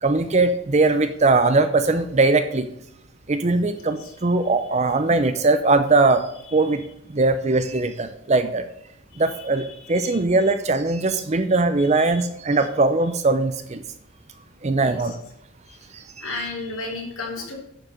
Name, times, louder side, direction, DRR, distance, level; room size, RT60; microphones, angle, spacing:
voice 1, 0.0-2.7 3.3-6.2 6.5-6.8 7.1-8.6 9.2-13.8 14.6-15.2 15.9-16.3, right 3 dB, 30° right, 9 dB, 0.5 m, -20 dB
voice 2, 9.1-10.5 11.8-12.2 14.8-15.2 15.7-15.8 16.2-17.5, left 3 dB, 80° left, -1 dB, 3.3 m, -35 dB
11.0 x 4.8 x 6.4 m, 0.75 s
head